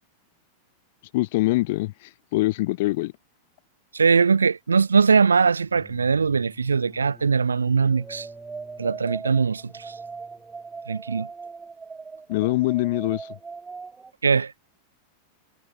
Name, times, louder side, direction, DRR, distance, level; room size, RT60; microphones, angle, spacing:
voice 1, 1.1-3.1 12.3-13.3, left 20 dB, 50° left, 0.4 m, -24 dB
voice 2, 3.9-8.3 8.8-9.9 10.9-11.3 14.2-14.5, right 5 dB, 75° right, 0.4 m, -21 dB
sound 1, 5.6-11.1, left 3 dB, 10° left, 7.5 m, -52 dB
sound 2, 6.3-14.1, right 4 dB, 15° right, 3.3 m, -40 dB
figure-of-eight pair, 90°, 0 cm